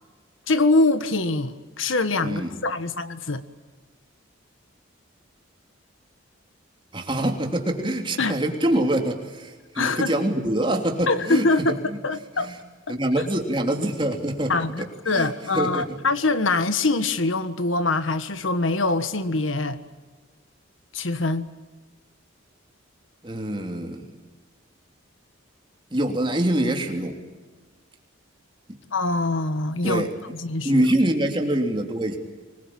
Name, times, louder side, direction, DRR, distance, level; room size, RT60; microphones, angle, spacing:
voice 1, 0.5-3.4 8.2-8.3 9.7-10.1 11.1-12.5 12.9-13.0 14.5-19.8 20.9-21.5 28.9-30.1 30.4-30.8, left 3 dB, 75° left, 11 dB, 1.5 m, -24 dB
voice 2, 2.2-2.5 6.9-12.0 12.4-12.6 12.9-14.6 15.1-15.3 15.5-15.9 23.2-24.1 25.9-27.2 29.8-30.1 30.6-32.2, right 1 dB, 25° right, 2 dB, 3.2 m, -25 dB
24.5 x 21.5 x 8.8 m, 1.3 s
head